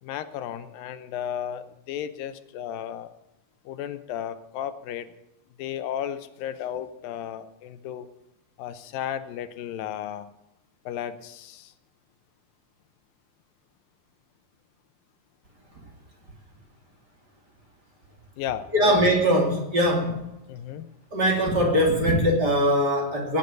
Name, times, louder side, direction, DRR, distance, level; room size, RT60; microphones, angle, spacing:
voice 1, 0.0-3.1 3.7-5.1 5.6-8.1 8.6-10.3 10.9-11.7 18.4-19.0 20.0-20.1 20.5-20.9, left 10 dB, 85° left, 11 dB, 2.6 m, -34 dB
voice 2, 18.7-20.3 21.1-23.4, equal, 30° right, 0 dB, 3.0 m, -21 dB
18.0 x 8.4 x 8.0 m, 0.89 s
omnidirectional pair, 4.0 m